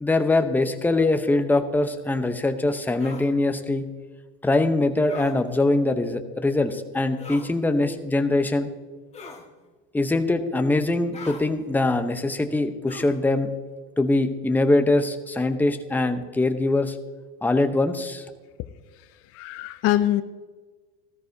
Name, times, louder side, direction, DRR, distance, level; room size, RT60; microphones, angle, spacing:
voice 1, 0.0-3.9 4.4-8.7 9.9-13.5 14.0-16.9 17.4-18.2, left 2 dB, 5° left, 7 dB, 0.8 m, -23 dB
sound 1, 3.0-3.3 5.1-5.3 7.2-7.5 9.1-9.5 11.1-11.5 12.9-13.2, left 4 dB, 20° left, 1.8 m, -40 dB
voice 2, 18.9-20.2, left 14 dB, 55° left, 12 dB, 0.6 m, -24 dB
13.5 x 13.5 x 2.7 m, 1.4 s
hypercardioid pair, 100°, 29 cm